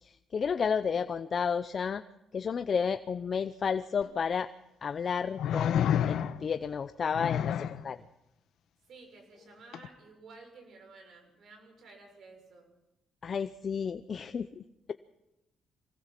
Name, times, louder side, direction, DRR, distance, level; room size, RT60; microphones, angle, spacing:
voice 1, 0.0-2.0 2.3-4.5 4.8-8.0 13.2-14.6, left 6 dB, 50° left, 11 dB, 0.6 m, -32 dB
sound 1, 4.0-4.1 5.4-6.6 7.1-7.8 9.7-9.9, left 9 dB, 75° left, 1.0 m, -29 dB
voice 2, 8.9-12.7, right 3 dB, 65° right, 4 dB, 6.5 m, -53 dB
24.5 x 19.0 x 5.9 m, 0.93 s
cardioid pair, 90°, 0 cm